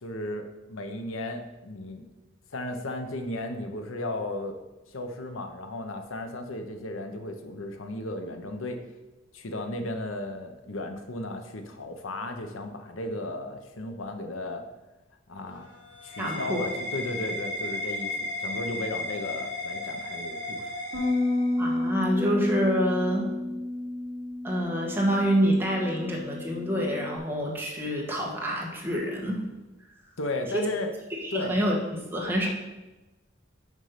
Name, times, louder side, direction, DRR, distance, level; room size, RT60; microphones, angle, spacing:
voice 1, 0.0-2.1 2.5-4.6 4.9-8.8 9.3-14.6 15.3-15.7 16.0-20.7 30.2-30.9 31.3-31.6, left 2 dB, 85° left, 6 dB, 0.8 m, -35 dB
sound 1, 15.4-21.8, left 1 dB, 65° left, 2.4 m, -35 dB
voice 2, 16.2-16.7 21.6-23.3 24.4-29.4 30.5-30.6 31.1-32.5, equal, 10° right, -2 dB, 1.3 m, -27 dB
Bass guitar, 20.9-27.2, left 2 dB, 50° right, 1.7 m, -31 dB
6.2 x 5.4 x 5.6 m, 1.1 s
head